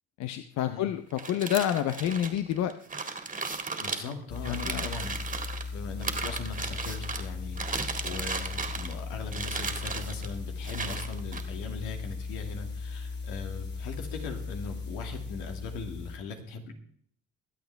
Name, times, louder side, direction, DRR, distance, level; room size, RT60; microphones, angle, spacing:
voice 1, 0.2-2.7 4.4-4.9, left 10 dB, 65° left, 9 dB, 0.8 m, -29 dB
sound 1, 1.1-5.6 6.0-7.2 7.6-9.0 9.3-10.3 10.6-11.4, right 4 dB, 25° right, 2.0 m, -35 dB
voice 2, 3.8-5.2 5.7-16.7, left 5 dB, 85° left, 4 dB, 2.3 m, -40 dB
sound 2, 4.3-16.2, left 4 dB, 35° left, 2.9 m, -37 dB
23.0 x 8.3 x 3.4 m, 0.63 s
cardioid pair, 95°, 30 cm